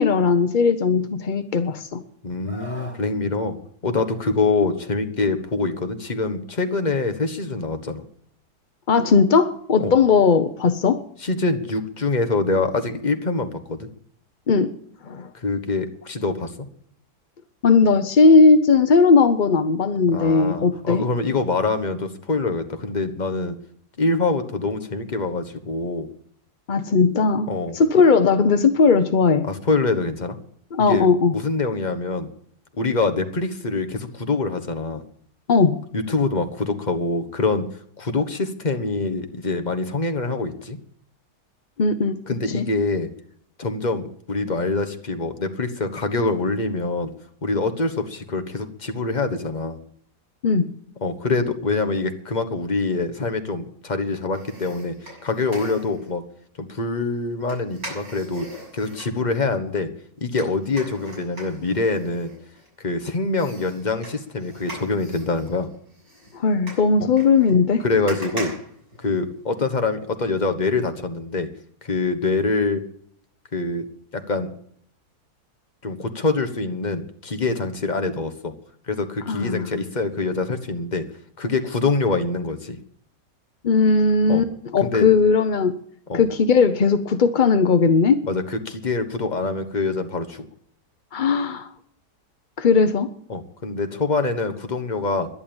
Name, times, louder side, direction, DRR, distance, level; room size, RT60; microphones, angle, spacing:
voice 1, 0.0-2.0 8.9-11.0 14.5-14.8 15.0-15.3 17.6-21.0 26.7-27.5 27.7-29.4 30.7-31.3 35.5-35.8 41.8-42.2 42.5-42.7 50.4-50.7 66.3-67.8 79.3-79.7 83.6-85.8 86.1-88.2 91.1-91.7 92.6-93.1, left 4 dB, 50° left, 10 dB, 0.6 m, -18 dB
voice 2, 2.2-3.6 3.8-8.0 9.8-9.9 11.2-13.9 15.3-16.5 20.1-23.6 24.0-26.1 27.5-27.8 29.4-30.4 30.8-32.3 32.8-35.0 35.9-37.7 38.0-40.8 42.3-43.1 43.6-47.1 47.4-49.8 51.0-56.2 56.6-58.5 58.7-59.9 60.2-62.3 62.8-65.7 67.0-67.1 67.8-68.5 69.0-71.5 71.8-72.8 73.5-73.8 74.1-74.5 75.8-78.5 78.9-81.0 81.4-82.8 84.3-84.4 84.8-85.1 86.1-86.2 88.2-90.5 93.3-95.3, left 3 dB, 30° left, 7 dB, 1.3 m, -25 dB
Screaming, 2.5-3.0 4.5-4.7, right 2 dB, 5° left, 3.4 m, -39 dB
sound 1, 54.3-56.1 57.5-59.1 60.4-62.9 63.3-69.6 69.9-70.0, right 1 dB, 60° right, 7.7 m, -40 dB
11.0 x 11.0 x 8.8 m, 0.64 s
omnidirectional pair, 1.8 m